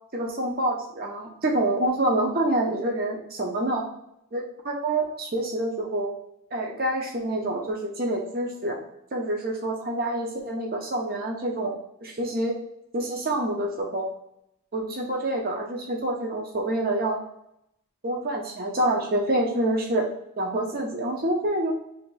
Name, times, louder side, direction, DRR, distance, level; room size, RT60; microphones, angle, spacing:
voice 1, 0.1-3.9 4.3-6.1 6.5-8.8 9.1-11.7 12.0-12.6 12.9-14.1 14.7-17.2 18.0-20.1 20.4-21.7, right 1 dB, 45° right, -1 dB, 0.7 m, -27 dB
3.1 x 2.9 x 4.5 m, 0.78 s
head